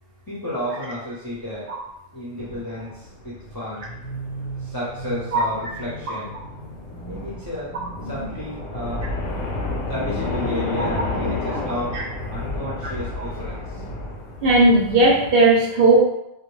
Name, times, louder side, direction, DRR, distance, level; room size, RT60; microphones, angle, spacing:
voice 1, 0.3-1.7 2.1-3.9 4.6-6.3 7.1-7.8 8.0-9.1 9.9-14.0, left 1 dB, 25° left, -9 dB, 0.6 m, -32 dB
sound 1, 2.4-15.3, left 2 dB, 90° left, 0.9 m, -31 dB
voice 2, 14.4-16.0, right 2 dB, 65° right, -3 dB, 0.8 m, -16 dB
2.3 x 2.2 x 3.0 m, 0.85 s
omnidirectional pair, 1.1 m